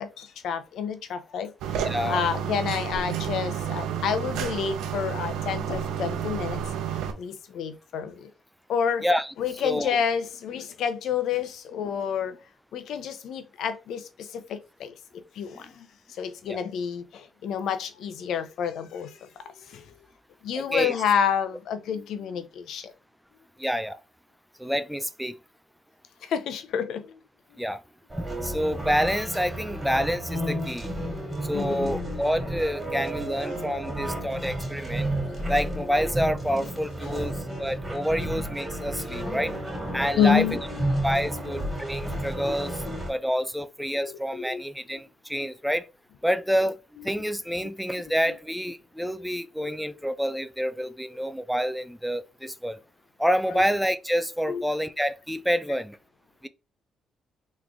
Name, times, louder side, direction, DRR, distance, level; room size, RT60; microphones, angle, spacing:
voice 1, 0.0-6.6 7.2-8.3 8.7-9.0 9.4-12.4 12.7-14.9 15.4-20.0 20.4-22.9 26.2-27.2 31.2-32.4 33.5-34.4 36.6-36.7 37.1-37.3 39.1-41.0 41.3-41.8 42.4-42.6 42.9-43.0 44.0-44.6 45.4-45.5 49.6-49.7 54.5-54.6, left 7 dB, 75° left, 0.6 m, -30 dB
sound 1, 1.6-7.1, right 8 dB, 90° right, 0.7 m, -30 dB
voice 2, 1.9-2.2 9.0-9.3 9.6-10.0 16.5-16.6 20.5-20.9 23.6-24.0 24.6-25.4 27.6-27.8 28.2-30.9 31.4-35.1 35.5-37.3 37.6-39.5 39.9-40.4 41.0-42.8 43.1-45.9 46.2-46.8 47.0-52.8 53.2-56.0 56.4-56.5, equal, ahead, 0.4 m, -28 dB
sound 2, 28.1-43.1, right 1 dB, 20° right, 2.4 m, -32 dB
3.7 x 3.2 x 3.5 m
cardioid pair, 90°, 0 cm